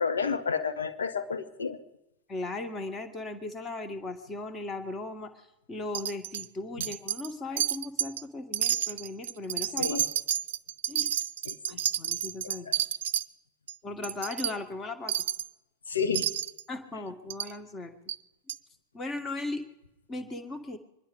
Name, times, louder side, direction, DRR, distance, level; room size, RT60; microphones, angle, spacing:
voice 1, 0.0-1.8 6.8-6.9 9.8-10.0 11.4-11.6 12.6-12.7 15.9-16.3, left 5 dB, 70° left, 9 dB, 1.3 m, -30 dB
voice 2, 2.3-10.0 10.9-11.1 11.7-12.7 13.8-15.1 16.7-17.9 18.9-19.6 20.1-20.8, left 2 dB, 20° left, 8 dB, 1.7 m, -37 dB
Wind chime, 5.9-6.5 6.8-7.3 7.6-8.2 8.5-13.3 13.7-13.8 14.0-14.5 15.1-15.5 16.1-16.6 17.3-17.5 18.1-18.2 18.5-18.6, right 10 dB, 60° right, 0.5 m, -30 dB
24.5 x 11.5 x 5.3 m, 0.92 s
figure-of-eight pair, 90°, 0 cm